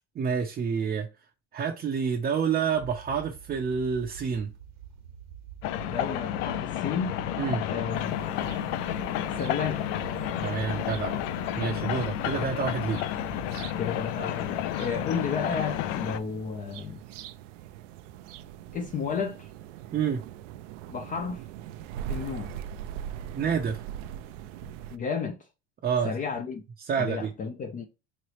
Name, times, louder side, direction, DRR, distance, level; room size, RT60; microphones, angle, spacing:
voice 1, 0.2-1.1 1.5-4.5 7.4-7.6 10.4-11.2 11.6-13.0 19.9-20.2 23.3-23.8 25.8-26.1 26.8-27.3, right 6 dB, 25° right, 0.6 m, -28 dB
sound 1, 2.7-13.7, right 10 dB, 65° right, 0.9 m, -46 dB
sound 2, 5.6-16.2, left 12 dB, 70° left, 0.6 m, -31 dB
voice 2, 5.8-7.2 7.7-8.7 9.4-9.9 13.8-17.0 18.7-19.5 20.9-21.4 22.1-22.6 24.9-25.4 26.0-26.6 27.0-27.8, left 5 dB, 25° left, 0.4 m, -32 dB
sound 3, 7.9-25.0, right 10 dB, 85° right, 0.5 m, -42 dB
3.9 x 3.1 x 2.9 m
supercardioid pair, 130°, 37 cm